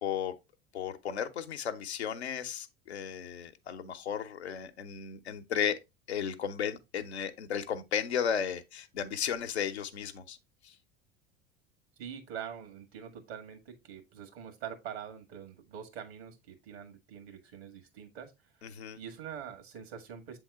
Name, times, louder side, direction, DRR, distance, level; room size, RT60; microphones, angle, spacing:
voice 1, 0.0-0.3 0.7-5.8 6.1-10.4 10.6-10.7 18.6-19.0, left 8 dB, 85° left, 0.8 m, -34 dB
voice 2, 12.0-18.3 19.0-20.4, right 8 dB, 70° right, 1.8 m, -44 dB
7.7 x 3.5 x 3.5 m
hypercardioid pair, 75°, 32 cm